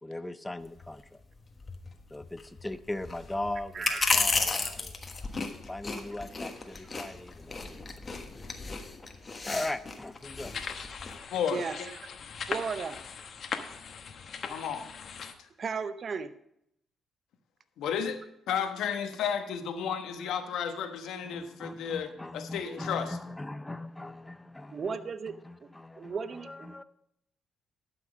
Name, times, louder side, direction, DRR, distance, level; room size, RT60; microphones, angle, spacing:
voice 1, 0.0-1.2 2.1-5.0 5.7-8.2 9.5-10.5 21.2-26.8, left 2 dB, 10° left, 12 dB, 0.5 m, -39 dB
sound 1, 0.6-11.2, left 3 dB, 30° left, 1.3 m, -34 dB
voice 2, 3.7-4.1 11.5-11.8 12.5-13.0 15.6-16.3 24.7-25.7 26.0-26.8, right 5 dB, 45° right, 13 dB, 0.7 m, -35 dB
sound 2, 10.2-15.3, left 6 dB, 55° left, 1.0 m, -40 dB
voice 3, 11.3-11.8 14.5-14.8 15.4-15.5 17.8-18.2 18.5-23.2, left 7 dB, 80° left, 6 dB, 1.1 m, -33 dB
12.0 x 6.0 x 5.1 m, 0.77 s
cardioid pair, 90°, 0 cm